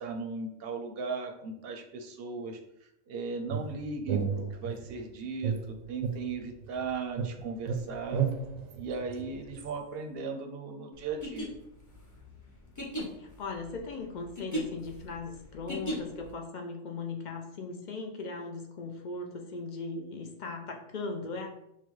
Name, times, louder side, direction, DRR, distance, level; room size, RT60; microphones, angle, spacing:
voice 1, 0.0-2.6 3.1-8.2 8.7-11.5, right 4 dB, 60° right, 3 dB, 0.8 m, -37 dB
sound 1, 3.5-5.0 5.4-6.9 7.2-9.7, right 6 dB, 80° right, 1.0 m, -33 dB
sound 2, 11.1-16.3, right 1 dB, 15° left, 0.7 m, -37 dB
voice 2, 13.2-21.5, left 3 dB, 55° left, 3 dB, 0.5 m, -38 dB
5.7 x 2.2 x 3.2 m, 0.78 s
omnidirectional pair, 1.3 m